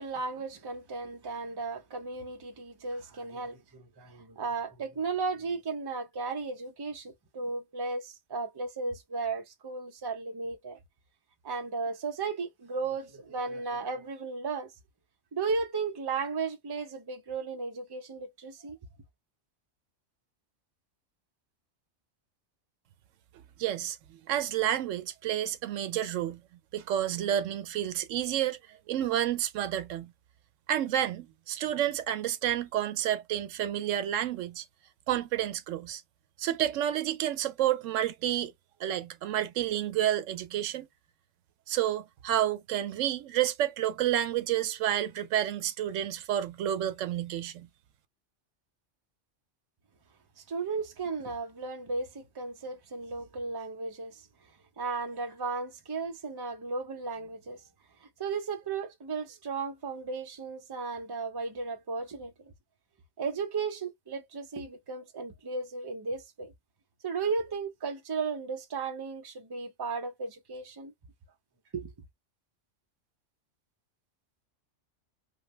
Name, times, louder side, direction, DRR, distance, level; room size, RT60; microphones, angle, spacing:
voice 1, 0.0-10.8 11.4-14.7 15.3-18.8 50.4-54.2 54.8-57.6 58.0-62.5 63.2-66.5 67.0-70.9 71.7-71.9, right 4 dB, 30° right, 0.5 m, -35 dB
voice 2, 23.6-24.0 24.3-26.4 26.7-28.6 28.9-30.1 30.7-34.6 35.1-36.0 36.4-38.5 38.8-40.9 41.7-47.7, right 11 dB, 85° right, 0.9 m, -30 dB
2.7 x 2.2 x 3.1 m
omnidirectional pair, 1.3 m